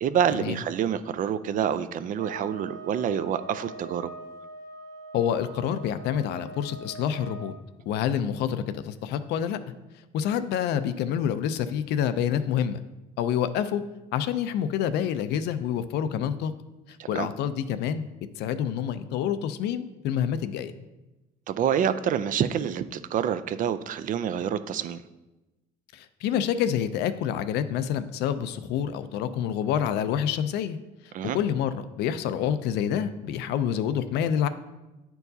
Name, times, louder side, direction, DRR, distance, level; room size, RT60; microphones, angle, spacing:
voice 1, 0.0-4.1 17.1-17.3 21.5-25.0 31.1-31.4, right 9 dB, 50° right, 12 dB, 0.4 m, -27 dB
sound 1, 2.2-7.6, right 3 dB, 15° left, 0.9 m, -43 dB
voice 2, 5.1-7.5 7.9-9.6 10.1-12.8 13.2-13.8 14.1-16.5 17.1-18.1 18.4-20.7 25.9-30.8 31.3-34.5, left 9 dB, 80° left, 12 dB, 0.4 m, -27 dB
9.7 x 4.5 x 2.7 m, 1.0 s
cardioid pair, 110°, 17 cm